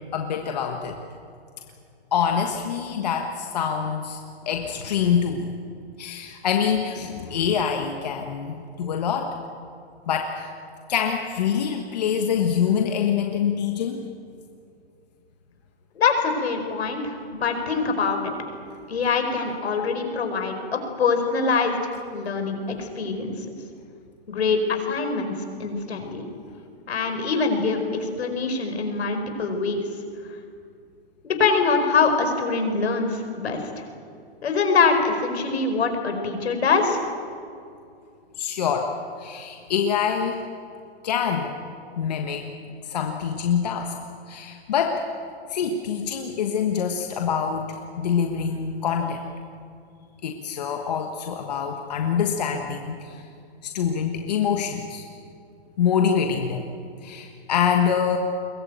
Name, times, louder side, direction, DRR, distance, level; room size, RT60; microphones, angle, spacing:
voice 1, 0.1-1.0 2.1-4.2 4.4-5.5 6.0-9.3 10.1-10.5 10.9-14.1 38.4-40.4 41.0-41.5 42.0-42.5 42.8-43.9 44.3-45.0 45.5-49.2 50.2-53.2 53.6-55.0 55.8-56.6 57.0-58.2, left 7 dB, 40° left, 3 dB, 1.4 m, -25 dB
voice 2, 15.9-18.3 18.9-23.3 24.3-25.3 25.6-26.2 26.9-29.8 31.2-33.8 34.4-37.0, left 4 dB, 75° left, 5 dB, 4.9 m, -24 dB
22.0 x 19.5 x 9.2 m, 2.4 s
hypercardioid pair, 180°, 32 cm